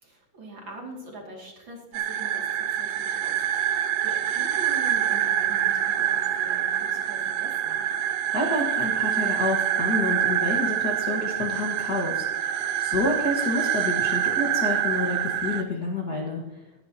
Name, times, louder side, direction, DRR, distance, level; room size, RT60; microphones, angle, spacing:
voice 1, 0.0-7.8, right 1 dB, 35° right, -1 dB, 2.8 m, -43 dB
sound 1, 1.9-15.6, right 10 dB, 85° right, 1.5 m, -26 dB
voice 2, 8.3-16.6, left 2 dB, 45° left, -1 dB, 1.3 m, -29 dB
20.0 x 11.5 x 2.9 m, 1.0 s
omnidirectional pair, 4.0 m